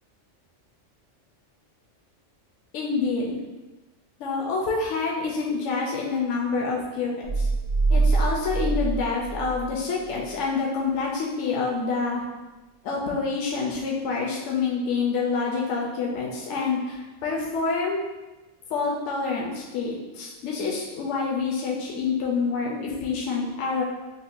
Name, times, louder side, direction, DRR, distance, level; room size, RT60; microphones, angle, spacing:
voice 1, 2.7-3.4 4.2-7.5 7.9-12.2 12.8-18.0 18.7-23.8, left 4 dB, 75° left, -3 dB, 0.9 m, -27 dB
sound 1, 7.2-9.8 10.1-10.3, right 3 dB, 60° right, 1.0 m, -24 dB
5.2 x 2.1 x 2.4 m, 1.1 s
omnidirectional pair, 1.3 m